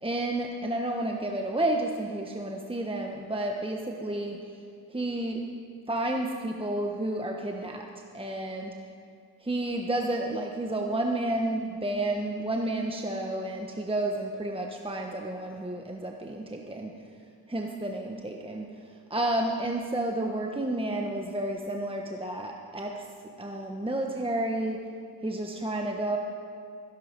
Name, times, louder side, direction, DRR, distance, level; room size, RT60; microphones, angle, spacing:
voice 1, 0.0-4.4 4.9-5.4 5.9-7.9 8.1-8.7 9.4-16.9 17.5-18.7 19.1-23.0 23.4-24.8 25.2-26.2, right 1 dB, 15° right, 1 dB, 1.2 m, -31 dB
22.0 x 11.5 x 5.3 m, 2.3 s
cardioid pair, 60°, 42 cm